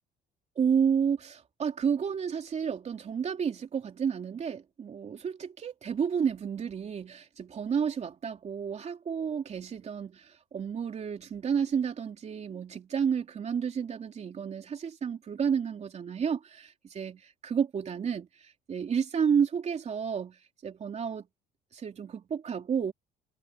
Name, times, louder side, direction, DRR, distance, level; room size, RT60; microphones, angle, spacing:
voice 1, 0.6-21.3 21.7-22.9, right 7 dB, 40° right, 3.4 m, -31 dB
cardioid pair, 110°, 17 cm